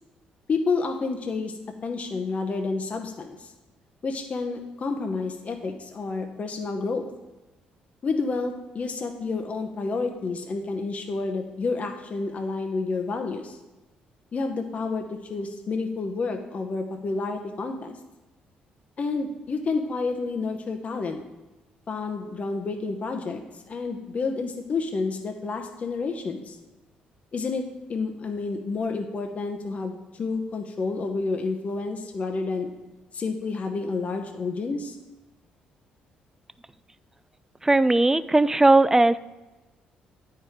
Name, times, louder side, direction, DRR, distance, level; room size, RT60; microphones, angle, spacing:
voice 1, 0.5-1.5 1.8-3.5 4.0-7.1 8.0-13.6 14.3-15.0 15.3-18.0 19.0-21.2 21.9-23.4 23.7-26.6 27.3-32.7 33.1-35.0, left 4 dB, 45° left, 4 dB, 0.8 m, -29 dB
voice 2, 37.6-39.2, right 2 dB, 15° right, 16 dB, 0.3 m, -18 dB
8.9 x 4.6 x 5.0 m, 1.1 s
supercardioid pair, 65°, 3 cm